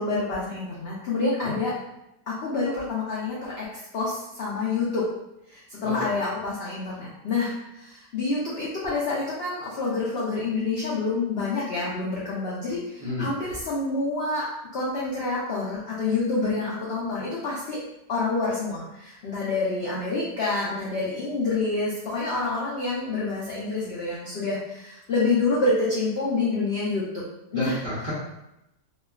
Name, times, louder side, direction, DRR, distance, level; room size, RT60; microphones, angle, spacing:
voice 1, 0.0-1.7 2.3-3.7 3.9-5.0 5.5-14.4 14.7-17.8 18.1-27.0 27.5-27.8, left 3 dB, 80° left, -7 dB, 0.5 m, -27 dB
voice 2, 5.8-6.2 13.0-13.3 27.5-28.1, left 1 dB, 55° right, -9 dB, 0.7 m, -31 dB
3.2 x 2.1 x 2.3 m, 0.87 s
omnidirectional pair, 1.8 m